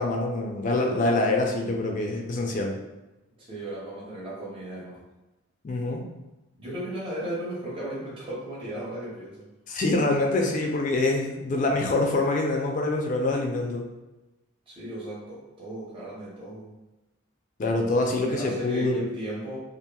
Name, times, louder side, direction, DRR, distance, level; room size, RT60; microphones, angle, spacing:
voice 1, 0.0-2.7 5.6-6.0 9.7-13.8 17.6-19.1, left 2 dB, 35° left, 1 dB, 0.3 m, -25 dB
voice 2, 3.4-5.0 6.6-9.5 14.7-16.7 18.2-19.6, right 1 dB, 25° right, -8 dB, 0.7 m, -36 dB
2.8 x 2.4 x 2.2 m, 1.0 s
head